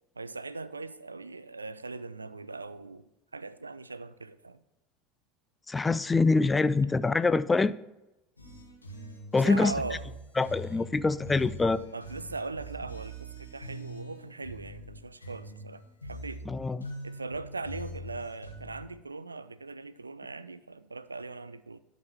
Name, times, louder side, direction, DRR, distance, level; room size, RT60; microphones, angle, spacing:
voice 1, 0.2-3.0 3.3-4.6 9.4-10.0 11.9-16.4 17.0-21.8, right 3 dB, 90° right, 0.3 m, -40 dB
voice 2, 5.7-7.7 9.3-9.7 10.4-11.8 16.5-16.9, left 3 dB, 15° left, 0.4 m, -25 dB
sound 1, 8.4-18.9, equal, 90° left, 1.3 m, -43 dB
11.0 x 4.0 x 5.8 m
figure-of-eight pair, 75°, 0 cm